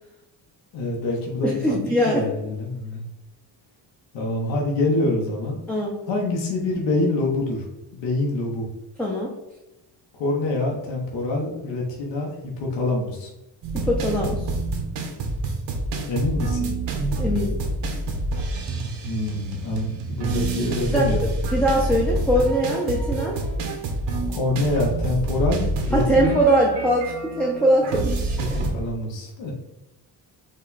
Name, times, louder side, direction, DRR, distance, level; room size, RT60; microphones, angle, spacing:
voice 1, 0.7-1.8 2.1-3.0 4.1-5.6 6.1-7.6 7.9-8.7 10.1-13.3 16.1-16.7 19.0-21.2 24.3-26.4 28.4-29.5, left 2 dB, 75° left, -1 dB, 1.1 m, -25 dB
voice 2, 1.4-2.3 5.7-6.0 9.0-9.3 13.7-14.5 17.1-17.6 20.9-23.4 25.9-28.6, right 1 dB, 5° left, -3 dB, 0.4 m, -22 dB
sound 1, 13.6-28.7, right 2 dB, 75° right, 0.9 m, -27 dB
5.2 x 2.3 x 4.0 m, 0.95 s
cardioid pair, 140°, 44 cm